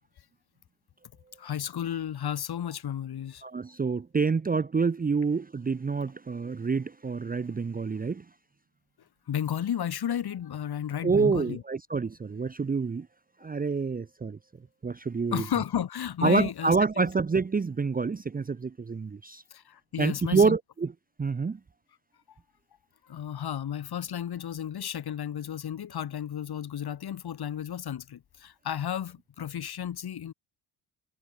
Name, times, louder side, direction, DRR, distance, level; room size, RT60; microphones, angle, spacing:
voice 1, 1.4-3.4 9.3-11.6 15.3-16.8 19.5-20.5 23.1-30.3, left 9 dB, 50° left, 4.6 m, -33 dB
voice 2, 3.4-8.2 11.0-13.1 13.4-14.4 14.8-15.4 16.2-19.4 20.0-20.9 21.2-21.6, right 4 dB, 15° right, 0.9 m, -27 dB
hypercardioid pair, 70°, 49 cm